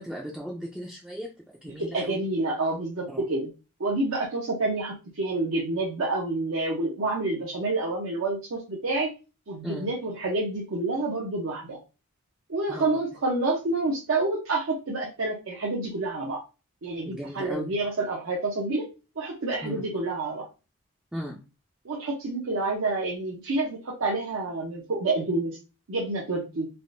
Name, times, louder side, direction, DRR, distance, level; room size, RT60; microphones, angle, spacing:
voice 1, 0.0-1.3 1.6-2.2 3.1-3.2 9.6-9.9 12.7-13.0 17.0-17.7 19.6-19.8 21.1-21.4, equal, 5° right, -3 dB, 0.3 m, -36 dB
voice 2, 1.7-3.5 3.8-9.1 9.5-11.8 12.5-16.4 16.8-18.8 19.2-20.5 21.8-25.6 25.9-26.7, right 2 dB, 75° right, -3 dB, 0.6 m, -28 dB
3.4 x 2.5 x 2.5 m, 0.31 s
head